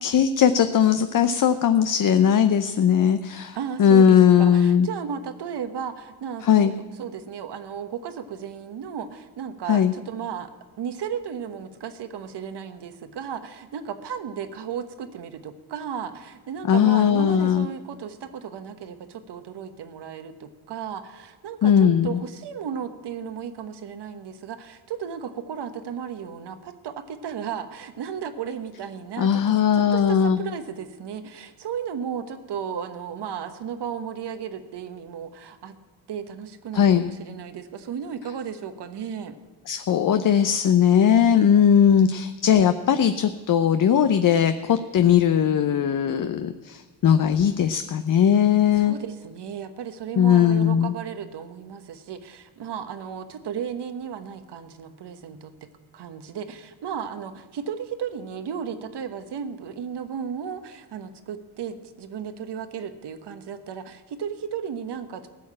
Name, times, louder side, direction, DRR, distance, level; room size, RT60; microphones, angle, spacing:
voice 1, 0.0-4.9 6.4-6.7 9.7-9.9 16.7-17.7 21.6-22.2 29.2-30.4 36.7-37.1 39.7-48.9 50.2-50.9, left 8 dB, 45° left, 9 dB, 0.7 m, -19 dB
voice 2, 3.5-10.5 10.8-35.7 36.1-39.3 48.8-65.3, right 7 dB, 60° right, 9 dB, 1.3 m, -34 dB
14.5 x 6.4 x 8.8 m, 1.3 s
supercardioid pair, 60°, 46 cm